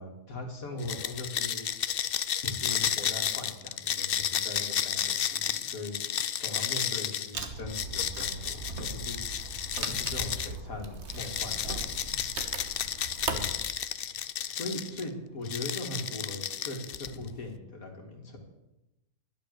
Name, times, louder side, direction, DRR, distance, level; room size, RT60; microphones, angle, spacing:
voice 1, 0.0-1.7 2.4-6.0 6.4-9.2 9.8-12.2 13.3-13.5 14.5-18.4, left 2 dB, 55° left, 1 dB, 2.8 m, -40 dB
sound 1, 0.8-10.6 11.1-15.0 15.5-17.3, left 9 dB, 80° left, 0.5 m, -32 dB
Wood, 7.3-13.5, right 4 dB, 45° right, 1.5 m, -38 dB
12.0 x 11.0 x 6.7 m, 0.94 s
omnidirectional pair, 1.7 m